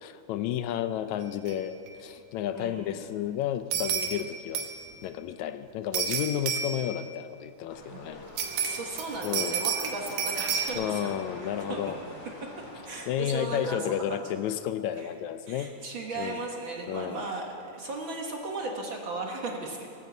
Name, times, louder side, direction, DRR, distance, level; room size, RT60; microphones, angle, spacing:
voice 1, 0.0-4.7 5.0-8.3 9.2-9.6 10.8-12.0 13.1-15.7 16.2-16.4 16.9-17.3, left 10 dB, 80° left, 11 dB, 1.9 m, -32 dB
sound 1, 1.5-1.6 1.9-2.0 3.7-4.2 4.5-4.9 5.9-6.9 8.4-10.7, right 7 dB, 80° right, 2.6 m, -30 dB
voice 2, 2.5-3.0 7.9-8.0 8.6-11.1 11.7-11.9 12.4-12.5 12.8-14.2 14.9-15.1 15.5-19.9, right 3 dB, 50° right, 0 dB, 1.6 m, -36 dB
sound 2, 7.7-13.1, left 1 dB, 40° left, 2.5 m, -45 dB
19.0 x 9.2 x 8.1 m, 2.5 s
omnidirectional pair, 3.4 m